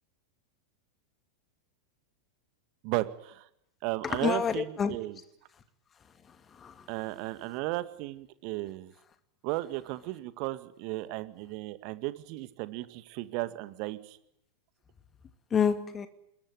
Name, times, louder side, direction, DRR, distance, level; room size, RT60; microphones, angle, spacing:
voice 1, 2.8-3.5 3.8-5.2 6.9-8.9 9.4-14.2, right 19 dB, 45° right, 1.9 m, -35 dB
voice 2, 4.0-5.0 6.5-6.9 15.5-16.1, left 7 dB, 20° left, 2.3 m, -28 dB
26.5 x 22.0 x 9.9 m
figure-of-eight pair, 90°, 0 cm